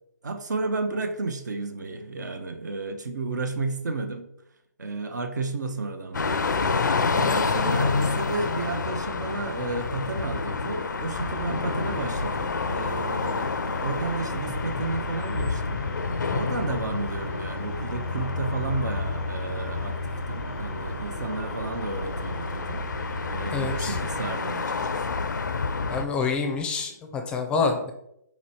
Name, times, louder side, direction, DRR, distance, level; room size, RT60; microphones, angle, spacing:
voice 1, 0.2-4.2 4.8-13.5 13.8-15.8 16.3-23.0 23.3-25.2, right 3 dB, 75° right, 6 dB, 0.7 m, -32 dB
sound 1, 6.1-26.1, left 4 dB, 85° left, 0.4 m, -29 dB
sound 2, 11.1-24.3, equal, 45° right, 1.0 m, -36 dB
voice 2, 23.5-23.9 25.9-27.9, left 4 dB, 10° left, 4 dB, 0.4 m, -27 dB
4.2 x 3.1 x 4.1 m, 0.78 s
hypercardioid pair, 145°, 10 cm